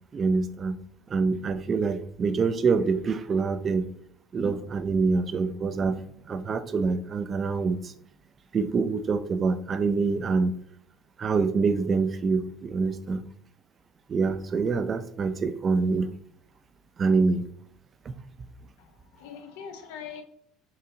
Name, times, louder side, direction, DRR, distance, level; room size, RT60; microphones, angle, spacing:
voice 1, 0.1-0.8 1.1-3.9 4.3-7.9 8.5-10.6 11.2-13.2 14.1-16.1 17.0-17.5 18.1-18.2, right 4 dB, 30° right, 0.3 m, -26 dB
voice 2, 18.8-20.2, left 7 dB, 85° left, 0.6 m, -42 dB
4.2 x 2.6 x 2.7 m
cardioid pair, 125°, 0 cm